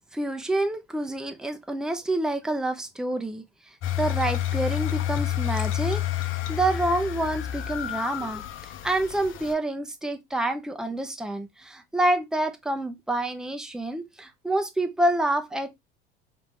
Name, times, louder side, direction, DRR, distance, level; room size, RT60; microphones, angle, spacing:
voice 1, 0.1-3.4 4.0-8.4 8.8-15.7, right 1 dB, ahead, 0.7 m, -27 dB
sound 1, 3.8-9.5, left 12 dB, 45° left, 0.6 m, -29 dB
5.0 x 2.5 x 3.3 m
hypercardioid pair, 70°, 29 cm